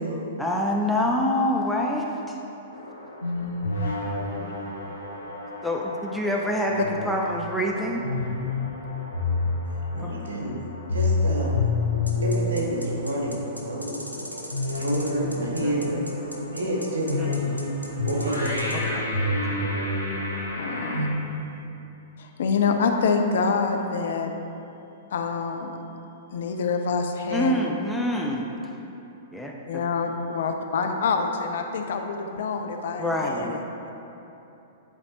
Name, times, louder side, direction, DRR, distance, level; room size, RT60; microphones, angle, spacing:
voice 1, 0.4-2.4 5.6-8.0 10.0-10.1 15.6-15.8 17.2-17.3 18.7-19.1 19.5-19.6 27.3-28.5 29.3-29.8 33.0-33.5, left 1 dB, ahead, -2 dB, 0.5 m, -26 dB
sound 1, 2.7-21.1, left 2 dB, 85° left, 1.1 m, -29 dB
voice 2, 9.9-10.6 10.9-11.6 12.2-14.2 14.8-16.1 16.5-17.5 18.0-18.8, right 1 dB, 60° right, -3 dB, 1.5 m, -29 dB
sound 2, 12.1-18.8, left 1 dB, 90° right, 0.8 m, -39 dB
voice 3, 20.6-21.1 22.2-24.3 25.1-25.8 26.3-27.7 29.7-33.6, left 5 dB, 55° left, 4 dB, 0.5 m, -26 dB
10.5 x 4.3 x 2.9 m, 2.9 s
figure-of-eight pair, 105°, 0 cm